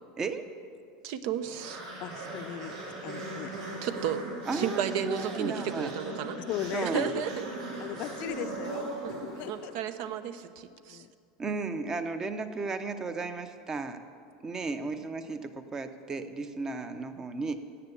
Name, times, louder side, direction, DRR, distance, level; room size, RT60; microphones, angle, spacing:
voice 1, 1.0-1.8 3.8-4.2 4.5-6.4 6.8-7.5 7.7-7.9 9.0-9.1 9.5-11.0, right 9 dB, 55° right, 12 dB, 0.7 m, -33 dB
sound 1, 1.4-9.9, right 2 dB, 90° right, 3.8 m, -39 dB
voice 2, 2.0-2.8 3.0-3.5 6.5-7.2 7.8-9.0 9.4-9.7 10.9-11.1, left 12 dB, 45° left, 11 dB, 0.5 m, -38 dB
voice 3, 4.5-5.9 6.7-7.1 11.4-14.0 14.4-17.6, right 3 dB, 15° right, 10 dB, 0.8 m, -34 dB
13.5 x 8.0 x 8.6 m, 2.3 s
supercardioid pair, 155°, 3 cm